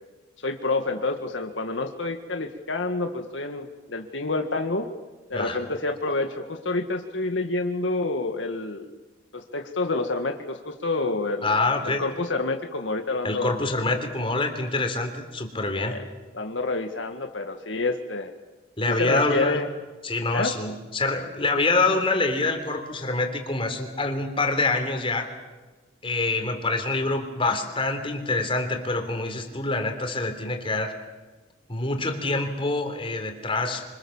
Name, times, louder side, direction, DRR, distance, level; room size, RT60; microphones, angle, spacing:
voice 1, 0.4-4.9 5.3-9.0 9.3-11.5 11.8-13.6 15.8-16.1 16.3-18.3 18.9-19.7 20.3-20.5, left 3 dB, 85° left, 5 dB, 1.8 m, -28 dB
voice 2, 11.4-12.0 13.2-16.0 18.8-19.6 20.0-25.3 26.0-31.0 31.7-33.8, left 3 dB, 30° left, 5 dB, 3.6 m, -26 dB
26.5 x 25.5 x 7.2 m, 1.2 s
head